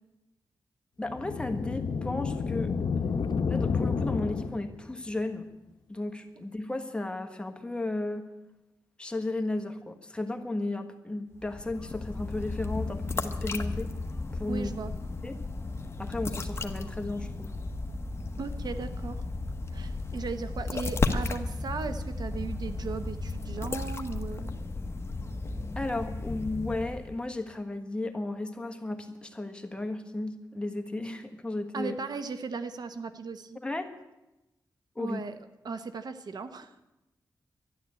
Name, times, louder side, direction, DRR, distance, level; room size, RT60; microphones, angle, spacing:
voice 1, 1.0-2.7 3.5-5.5 5.9-8.3 9.0-13.9 14.3-14.7 15.2-15.4 16.0-17.5 25.7-31.9 33.6-33.9 34.9-35.2, left 2 dB, 15° left, 5 dB, 1.4 m, -34 dB
sound 1, 1.1-4.9, left 5 dB, 75° left, 0.8 m, -30 dB
sound 2, 11.3-27.2, left 3 dB, 35° left, 1.1 m, -34 dB
voice 2, 14.5-14.9 18.4-19.2 19.7-24.5 31.7-33.6 35.0-35.4 35.6-36.7, right 4 dB, 65° right, 10 dB, 0.9 m, -37 dB
12.0 x 11.5 x 8.2 m, 0.97 s
wide cardioid pair, 95°, 7 cm